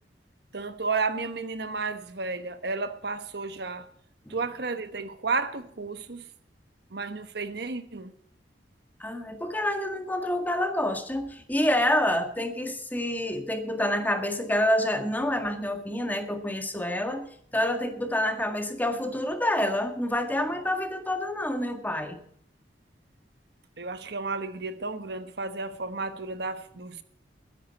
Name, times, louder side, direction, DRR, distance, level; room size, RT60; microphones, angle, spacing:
voice 1, 0.5-3.9 4.3-6.2 6.9-8.1 23.8-27.0, right 4 dB, 65° right, 1.2 m, -32 dB
voice 2, 9.0-22.2, left 1 dB, 10° left, 1.7 m, -28 dB
21.5 x 10.5 x 4.2 m
head